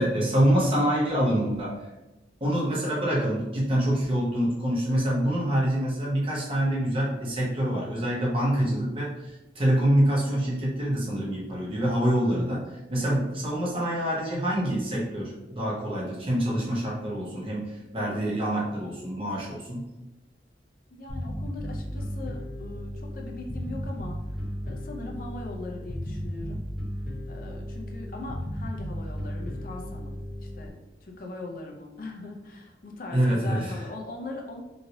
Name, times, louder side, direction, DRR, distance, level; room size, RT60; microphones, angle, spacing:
voice 1, 0.0-1.8 2.4-19.8 33.1-33.8, right 1 dB, 30° right, -5 dB, 0.8 m, -26 dB
voice 2, 20.9-26.7 27.3-30.7 31.0-34.6, left 2 dB, 50° left, 1 dB, 0.5 m, -40 dB
Bass guitar, 21.1-30.7, equal, 5° left, 1.4 m, -35 dB
3.1 x 2.7 x 2.8 m, 1.0 s
head